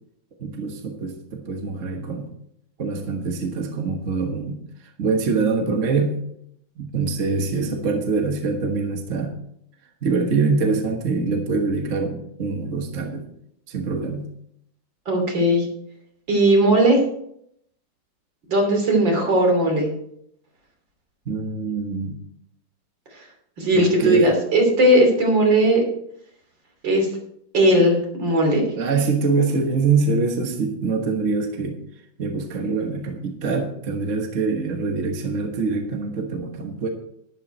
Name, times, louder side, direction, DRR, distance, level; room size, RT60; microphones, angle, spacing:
voice 1, 0.4-2.3 2.8-6.2 6.8-9.4 10.0-13.3 13.7-14.3 21.3-22.1 23.7-24.3 28.7-31.8 32.2-36.9, right 4 dB, 45° right, 3 dB, 1.5 m, -24 dB
voice 2, 15.1-15.7 16.3-17.0 18.5-19.9 23.6-25.8 26.8-27.1 27.5-28.6, right 1 dB, 70° right, 1 dB, 3.7 m, -17 dB
11.5 x 11.0 x 4.4 m, 0.73 s
omnidirectional pair, 2.1 m